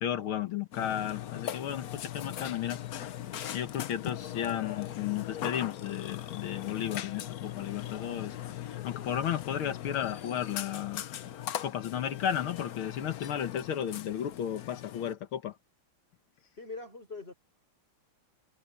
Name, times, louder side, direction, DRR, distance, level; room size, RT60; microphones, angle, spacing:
voice 1, 0.0-2.8 3.5-8.4 8.6-11.0 11.6-15.6, left 10 dB, 75° left, 2.0 m, -34 dB
Burping eructation, 0.7-15.1, left 11 dB, 60° left, 1.0 m, -39 dB
voice 2, 16.6-17.3, left 3 dB, 25° left, 4.9 m, -42 dB
omnidirectional pair, 2.3 m